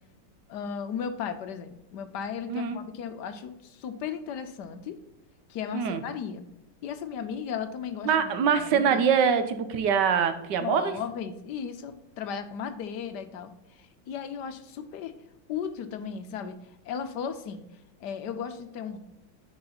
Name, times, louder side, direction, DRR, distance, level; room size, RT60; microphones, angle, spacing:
voice 1, 0.5-5.0 5.5-6.4 6.8-9.1 10.6-15.1 15.5-16.6 16.8-17.6 18.0-19.0, left 7 dB, 70° left, 10 dB, 1.2 m, -35 dB
voice 2, 2.5-2.8 5.7-6.0 8.0-10.9, right 7 dB, 70° right, 10 dB, 1.4 m, -24 dB
9.6 x 4.8 x 4.0 m, 0.93 s
omnidirectional pair, 2.0 m